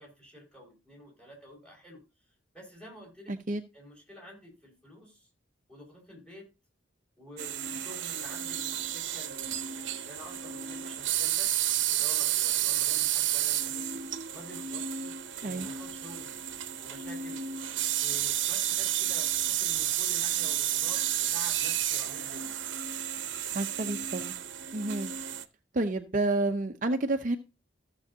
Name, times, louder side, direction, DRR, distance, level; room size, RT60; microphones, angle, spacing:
voice 1, 0.0-2.0 2.5-3.3 3.7-5.3 5.7-6.5 7.2-11.5 11.9-14.1 14.3-15.1 15.4-16.4 16.8-17.4 18.0-22.6, left 1 dB, 5° left, -1 dB, 5.3 m, -49 dB
voice 2, 3.3-3.6 15.4-15.7 23.4-24.3 24.7-25.1 25.7-27.4, right 2 dB, 45° right, 6 dB, 0.7 m, -30 dB
sound 1, 7.4-25.4, right 11 dB, 75° right, 0.8 m, -31 dB
15.0 x 7.0 x 2.8 m, 0.28 s
head